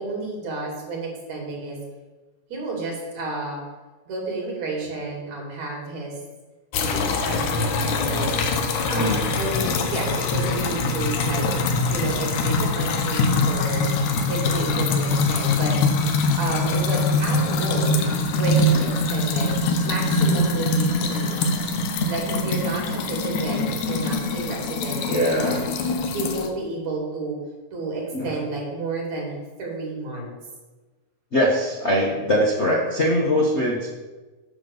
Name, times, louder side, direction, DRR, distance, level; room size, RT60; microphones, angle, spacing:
voice 1, 0.0-1.8 2.5-3.6 4.1-6.1 6.8-8.3 8.9-11.5 11.9-13.9 14.3-16.0 16.4-18.0 18.3-19.5 19.8-21.7 22.1-25.7 26.1-27.4 27.7-30.3, right 3 dB, 70° right, -1 dB, 3.9 m, -31 dB
sound 1, 6.7-26.5, left 2 dB, 80° left, 2.4 m, -23 dB
voice 2, 8.9-9.2 25.1-25.6 28.1-28.3 31.3-33.9, equal, 40° left, -4 dB, 0.9 m, -22 dB
9.3 x 5.9 x 7.1 m, 1.2 s
omnidirectional pair, 3.3 m